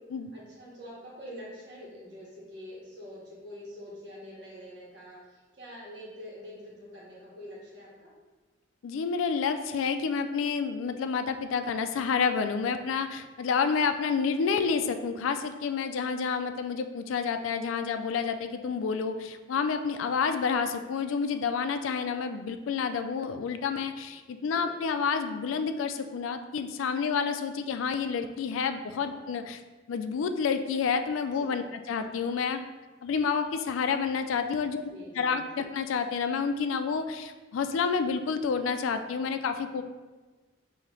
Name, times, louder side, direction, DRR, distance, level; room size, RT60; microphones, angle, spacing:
voice 1, 0.3-8.1 12.6-12.8 24.5-24.8 29.1-29.4 31.3-31.6 34.9-35.5, equal, 60° right, -6 dB, 1.4 m, -46 dB
voice 2, 8.8-29.6 29.9-32.6 33.0-34.8 35.2-39.8, left 5 dB, 85° left, 8 dB, 0.3 m, -29 dB
5.1 x 2.8 x 3.1 m, 1.3 s
head